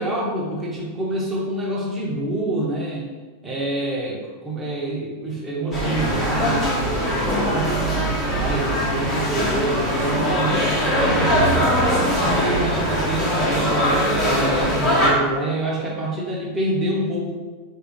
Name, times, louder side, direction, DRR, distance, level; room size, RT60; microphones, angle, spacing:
voice 1, 0.0-3.1 3.4-11.8 12.2-17.3, right 1 dB, 15° right, -4 dB, 1.0 m, -27 dB
sound 1, 5.7-15.1, equal, 15° left, 1.2 m, -21 dB
4.0 x 2.6 x 3.0 m, 1.4 s
figure-of-eight pair, 90°, 0 cm